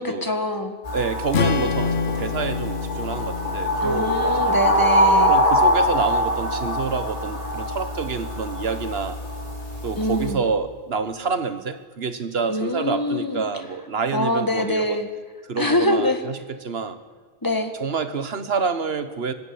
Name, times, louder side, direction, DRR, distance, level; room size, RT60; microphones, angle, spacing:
voice 1, 0.0-0.7 3.8-5.3 10.0-10.4 12.5-13.4 14.1-15.1 15.6-16.2 17.4-17.7, left 1 dB, 20° left, 6 dB, 1.7 m, -24 dB
sound 1, 0.9-10.3, equal, 35° left, 3.2 m, -23 dB
voice 2, 0.9-4.8 5.3-9.2 9.8-15.0 15.5-17.0 17.8-19.3, right 5 dB, 70° right, 11 dB, 1.4 m, -28 dB
Strum, 1.3-5.6, left 5 dB, 80° left, 1.1 m, -28 dB
19.5 x 15.5 x 8.6 m, 1.4 s
omnidirectional pair, 1.1 m